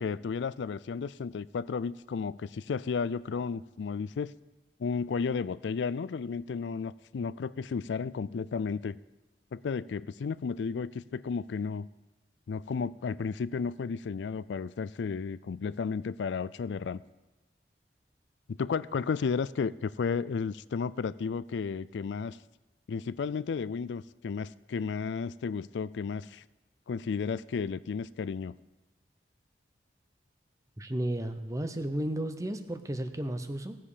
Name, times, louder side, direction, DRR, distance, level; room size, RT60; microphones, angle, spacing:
voice 1, 0.0-4.3 4.8-9.0 9.5-11.9 12.5-17.0 18.5-22.4 22.9-26.4 26.9-28.6, left 5 dB, 90° left, 18 dB, 0.4 m, -33 dB
voice 2, 30.8-33.8, right 1 dB, 20° right, 8 dB, 0.7 m, -33 dB
17.5 x 7.4 x 5.0 m, 1.1 s
head